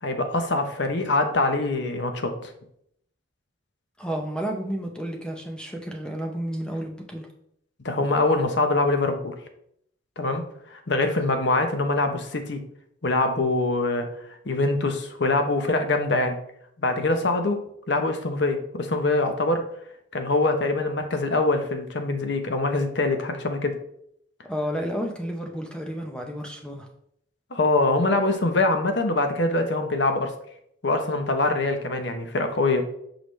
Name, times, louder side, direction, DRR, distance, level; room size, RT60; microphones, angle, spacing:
voice 1, 0.0-2.5 7.8-9.3 10.2-10.4 10.7-12.6 13.0-14.1 14.4-16.4 16.8-17.6 17.9-19.6 20.1-23.8 27.5-30.3 30.8-32.9, left 2 dB, 60° left, 6 dB, 0.8 m, -24 dB
voice 2, 4.0-7.3 24.4-26.9, equal, 5° left, 2 dB, 0.7 m, -31 dB
6.3 x 4.9 x 3.2 m, 0.72 s
head